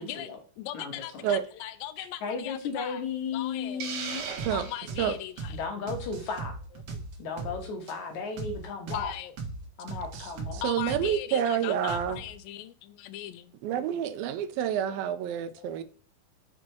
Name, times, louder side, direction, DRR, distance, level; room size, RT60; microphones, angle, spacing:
voice 1, 0.0-0.4 0.7-1.3 2.0-4.2 5.5-6.6 7.2-9.1 9.8-10.6, left 5 dB, 65° left, 2.1 m, -35 dB
voice 2, 0.6-3.0 3.3-3.9 4.5-5.6 6.9-7.0 7.4-7.7 8.9-9.4 10.6-13.6 14.9-15.2 15.6-15.8, left 13 dB, 80° left, 2.2 m, -39 dB
Hiss, 3.8-5.1, right 6 dB, 70° right, 2.8 m, -37 dB
sound 1, 4.4-4.6 4.9-5.1 5.4-5.6 5.9-7.6 7.9-8.0 8.4-8.6 8.9-9.1 9.4-9.6 9.9-11.4 11.9-12.3, right 4 dB, 55° right, 1.8 m, -37 dB
voice 3, 10.6-12.2 13.6-15.8, right 9 dB, 90° right, 2.4 m, -28 dB
6.4 x 4.3 x 4.5 m
omnidirectional pair, 4.2 m